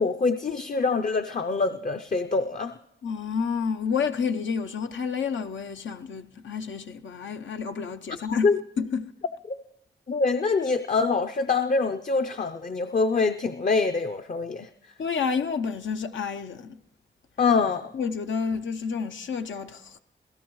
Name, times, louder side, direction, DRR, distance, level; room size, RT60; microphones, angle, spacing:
voice 1, 0.0-2.7 8.4-8.6 10.1-14.7 17.4-17.8, left 4 dB, 45° left, 0.6 m, -24 dB
voice 2, 3.0-9.1 15.0-16.8 17.9-20.0, left 6 dB, 85° left, 0.7 m, -30 dB
26.5 x 17.0 x 3.1 m
wide cardioid pair, 85°, 19 cm